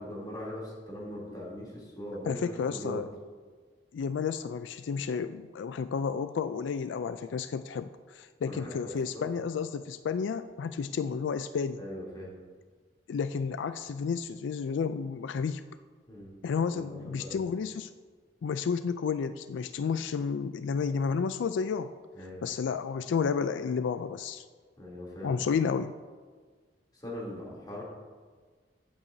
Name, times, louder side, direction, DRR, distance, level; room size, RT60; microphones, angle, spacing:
voice 1, 0.0-3.0 8.4-8.8 9.1-9.4 11.7-12.3 16.1-17.5 22.1-22.4 24.8-25.4 26.9-27.8, equal, 25° left, -6 dB, 3.0 m, -41 dB
voice 2, 2.3-3.1 3.9-11.8 13.1-15.6 16.4-17.9 18.4-21.9 22.4-24.4 25.2-25.9, left 6 dB, 90° left, 11 dB, 0.3 m, -31 dB
15.0 x 8.7 x 2.7 m, 1.5 s
head